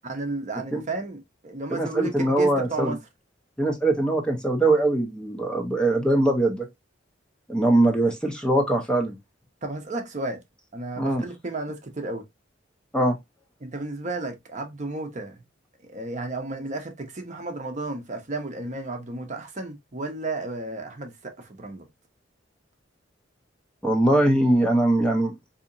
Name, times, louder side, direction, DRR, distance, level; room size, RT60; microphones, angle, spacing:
voice 1, 0.0-3.0 9.6-10.4 10.7-12.2 13.6-15.4 15.8-21.9, right 2 dB, 40° right, 0.7 m, -33 dB
voice 2, 1.7-3.0 3.6-6.7 7.5-9.2 11.0-11.2 12.9-13.2 23.8-25.3, right 1 dB, 5° left, 0.6 m, -22 dB
4.0 x 2.8 x 2.5 m
head